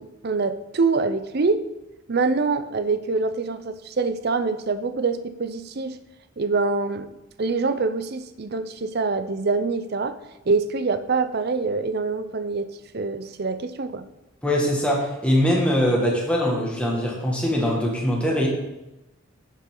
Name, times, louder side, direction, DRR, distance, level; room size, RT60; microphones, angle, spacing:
voice 1, 0.0-1.6 2.1-6.0 6.4-7.1 7.4-10.2 10.5-12.7 12.9-14.0, right 4 dB, 50° right, 11 dB, 0.5 m, -25 dB
voice 2, 14.4-18.5, equal, 5° left, -3 dB, 1.8 m, -22 dB
9.5 x 7.3 x 3.8 m, 0.97 s
head